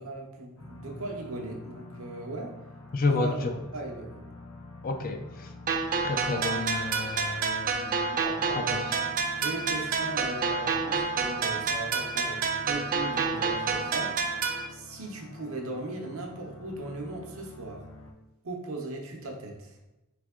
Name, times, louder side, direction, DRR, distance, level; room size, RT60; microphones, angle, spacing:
voice 1, 0.0-2.6 3.1-4.2 8.1-8.8 9.4-14.2 14.7-17.8 18.4-19.7, right 2 dB, 70° right, 2 dB, 0.8 m, -38 dB
steer the ship, 0.6-18.1, left 2 dB, 75° left, 0.8 m, -47 dB
voice 2, 2.9-3.6 4.8-5.5 6.0-8.1 8.5-9.0, left 3 dB, 40° left, 6 dB, 0.4 m, -30 dB
sound 1, 5.7-14.7, right 5 dB, 40° right, 0.4 m, -29 dB
3.5 x 3.3 x 3.6 m, 0.94 s
head